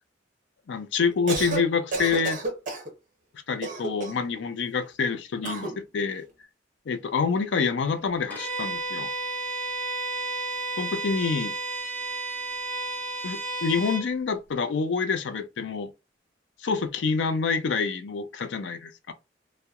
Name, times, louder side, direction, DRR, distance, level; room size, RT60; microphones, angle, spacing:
voice 1, 0.7-2.4 3.5-6.3 6.9-9.1 10.8-11.5 13.2-15.9 16.6-19.1, left 5 dB, 70° left, 0.4 m, -27 dB
Cough, 1.1-1.6 1.9-2.9 3.6-4.3 5.4-5.8, right 3 dB, 45° right, 0.6 m, -30 dB
Bowed string instrument, 8.3-14.1, right 3 dB, 10° left, 0.7 m, -32 dB
2.8 x 2.0 x 2.3 m
head